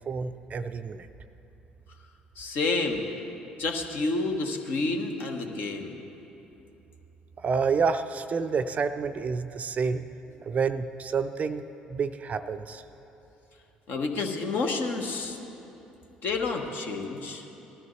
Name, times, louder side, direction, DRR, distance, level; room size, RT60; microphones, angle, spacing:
voice 1, 0.1-1.1 7.4-10.0 10.4-11.6 11.9-12.8, right 5 dB, 35° right, 10 dB, 0.5 m, -28 dB
voice 2, 2.4-3.1 3.6-6.0 13.9-15.4 16.2-17.5, left 3 dB, 50° left, 3 dB, 1.2 m, -29 dB
19.0 x 13.0 x 3.2 m, 3.0 s
figure-of-eight pair, 50°, 4 cm